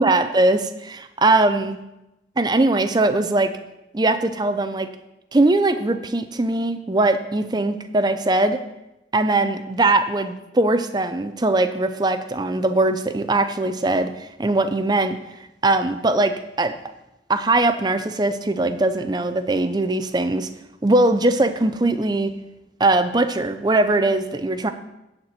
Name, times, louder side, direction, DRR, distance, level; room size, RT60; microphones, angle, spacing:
voice 1, 0.0-1.8 2.4-3.6 3.9-4.9 5.3-8.6 9.1-15.2 15.6-16.8 17.3-20.5 20.8-22.3 22.8-24.7, right 2 dB, 25° right, 10 dB, 0.5 m, -20 dB
10.5 x 4.4 x 7.7 m, 0.94 s
head